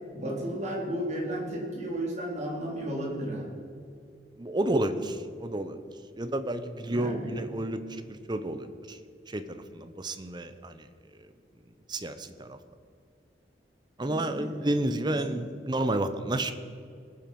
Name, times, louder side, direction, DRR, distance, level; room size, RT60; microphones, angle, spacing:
voice 1, 0.1-3.5 6.7-7.4 14.0-14.7 15.1-15.4, right 1 dB, 40° right, -3 dB, 3.3 m, -34 dB
voice 2, 4.4-5.8 6.2-7.8 8.1-9.0 9.3-10.9 11.9-12.6 14.0-16.5, right 1 dB, 25° right, 10 dB, 0.8 m, -31 dB
20.5 x 7.5 x 5.4 m, 2.4 s
head